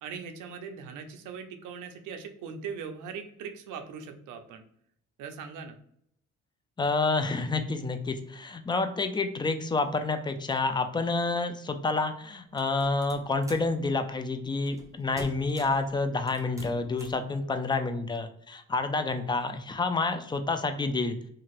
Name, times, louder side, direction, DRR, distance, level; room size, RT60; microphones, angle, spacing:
voice 1, 0.0-4.6 5.2-5.8, right 6 dB, 90° right, 6 dB, 0.5 m, -40 dB
voice 2, 6.8-21.2, left 3 dB, 15° left, 8 dB, 0.3 m, -29 dB
sound 1, 12.6-13.7 14.7-14.9 15.2-15.9 16.3-17.2, right 1 dB, 10° right, 0.7 m, -45 dB
2.8 x 2.4 x 2.9 m, 0.71 s
cardioid pair, 90°, 30 cm